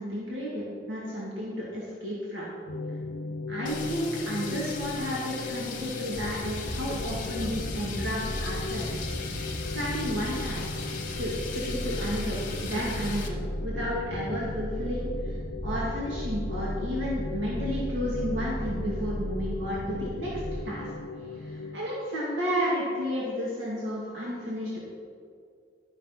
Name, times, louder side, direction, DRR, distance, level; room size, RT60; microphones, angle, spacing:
voice 1, 0.0-2.5 3.5-9.1 9.7-10.7 11.2-13.4 13.6-15.4 15.6-20.9 21.3-24.8, equal, 75° right, -6 dB, 2.1 m, -32 dB
sound 1, 2.7-21.8, left 3 dB, 75° left, 0.7 m, -39 dB
sound 2, 3.7-13.3, left 4 dB, 45° left, 1.6 m, -39 dB
sound 3, 6.1-20.6, equal, 35° right, 1.5 m, -35 dB
12.5 x 6.2 x 5.7 m, 2.3 s
head